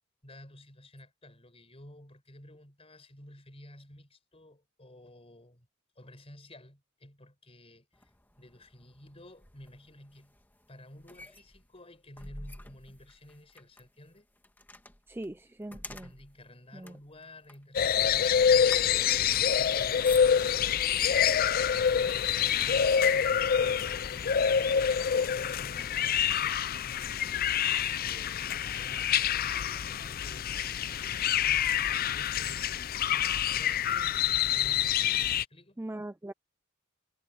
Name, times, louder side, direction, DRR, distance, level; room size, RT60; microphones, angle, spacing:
voice 1, 0.2-5.7 6.0-8.1 8.4-10.4 10.7-14.3 15.7-20.6 20.9-27.7 28.0-35.0 35.3-35.8, left 1 dB, 30° left, 5.5 m, -53 dB
sound 1, 7.9-20.8 21.6-21.8 22.2-23.2 23.9-24.0 24.4-26.1, left 1 dB, 10° left, 1.8 m, -51 dB
voice 2, 15.1-16.1 16.7-17.0 35.8-36.3, right 1 dB, 10° right, 0.5 m, -40 dB
sound 2, 17.7-35.4, left 8 dB, 45° left, 0.4 m, -27 dB
head